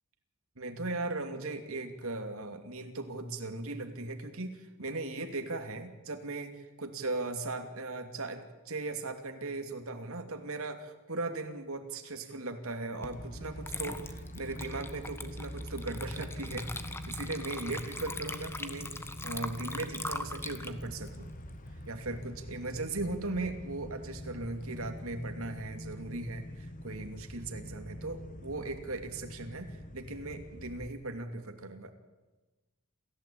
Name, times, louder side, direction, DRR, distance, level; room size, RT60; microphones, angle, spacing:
voice 1, 0.6-21.3 21.9-31.9, right 2 dB, 70° right, 6 dB, 2.8 m, -38 dB
Water / Liquid, 13.0-13.2 13.6-22.1, left 2 dB, 10° left, 1.3 m, -41 dB
sound 1, 13.1-30.9, equal, 35° left, 1.7 m, -44 dB
28.0 x 15.5 x 8.8 m, 1.2 s
head